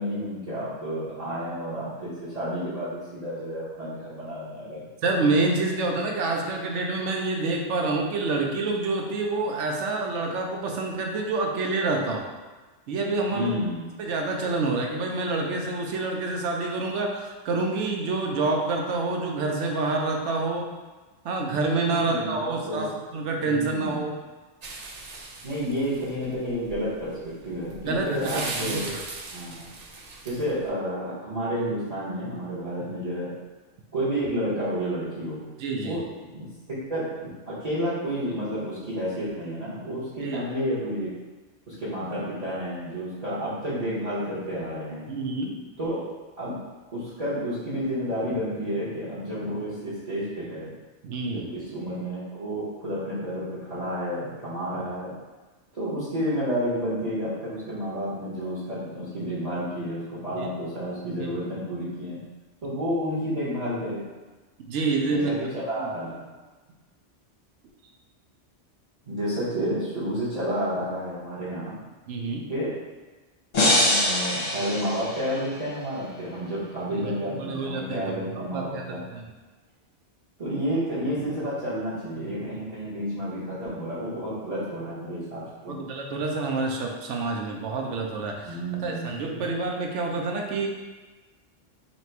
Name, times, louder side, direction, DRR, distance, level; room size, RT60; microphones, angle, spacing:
voice 1, 0.0-4.8 13.3-13.8 21.9-22.9 23.4-24.0 25.4-27.1 27.4-29.0 29.3-29.7 30.2-33.3 33.9-35.4 35.8-36.5 36.9-41.1 41.7-45.1 45.8-46.1 46.4-46.6 46.9-50.7 51.3-55.1 55.7-62.2 62.6-64.0 65.0-66.3 69.1-71.7 72.5-72.7 73.6-79.0 80.4-85.8 88.5-89.4, equal, 35° right, -10 dB, 1.0 m, -30 dB
voice 2, 5.0-12.3 12.9-13.5 14.0-20.7 21.2-24.2 27.9-29.0 35.6-36.0 40.2-40.4 45.1-45.6 51.0-51.5 60.4-60.5 61.2-61.3 64.7-65.3 65.8-65.9 72.1-72.4 76.9-78.2 78.5-79.2 85.7-90.7, right 3 dB, 80° right, 1 dB, 0.9 m, -27 dB
sound 1, 24.6-30.7, right 3 dB, 60° right, 0.4 m, -39 dB
sound 2, 73.5-75.7, left 1 dB, 40° left, 0.7 m, -24 dB
3.0 x 2.9 x 4.4 m, 1.2 s
omnidirectional pair, 1.2 m